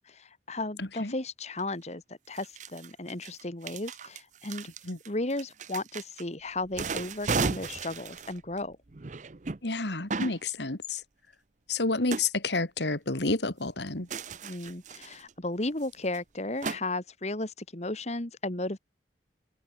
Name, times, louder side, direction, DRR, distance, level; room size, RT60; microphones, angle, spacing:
voice 1, 0.1-4.7 5.1-8.8 14.4-18.8, left 2 dB, 40° left, 2.1 m, -35 dB
voice 2, 0.8-1.1 4.8-5.0 9.6-11.0 11.7-14.1, left 3 dB, 80° left, 2.5 m, -30 dB
sound 1, 1.6-1.7 2.4-6.2 6.6-9.6 10.1-10.4 12.1-12.3 14.1-15.3 15.8-15.9 16.1-16.2 16.6-16.8, right 4 dB, 45° right, 0.7 m, -35 dB
head